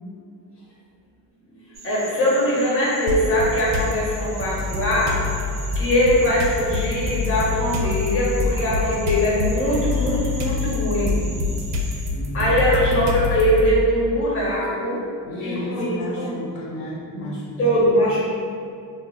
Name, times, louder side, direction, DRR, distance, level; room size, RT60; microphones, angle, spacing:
sound 1, 1.7-12.1, right 2 dB, 25° right, 0.4 m, -40 dB
voice 1, 1.8-5.2 5.7-11.2 12.3-15.0 15.4-16.3 17.1-17.2 17.6-18.2, equal, 30° left, -6 dB, 0.8 m, -21 dB
sound 2, 3.1-3.9 4.4-13.6, left 4 dB, 75° right, 0.5 m, -25 dB
voice 2, 12.1-12.6 15.2-17.9, equal, 75° left, -6 dB, 0.7 m, -32 dB
2.1 x 2.0 x 3.6 m, 2.4 s
cardioid pair, 105°, 42 cm